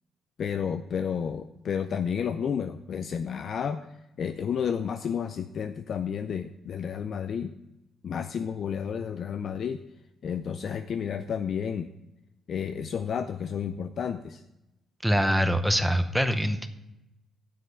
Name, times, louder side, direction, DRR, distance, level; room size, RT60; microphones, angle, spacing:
voice 1, 0.4-3.9 4.2-7.5 8.0-9.8 10.2-11.9 12.5-14.4, left 7 dB, 55° left, 9 dB, 0.4 m, -31 dB
voice 2, 15.0-16.7, equal, 5° right, 9 dB, 0.7 m, -24 dB
7.6 x 6.1 x 6.6 m, 0.91 s
cardioid pair, 90°, 0 cm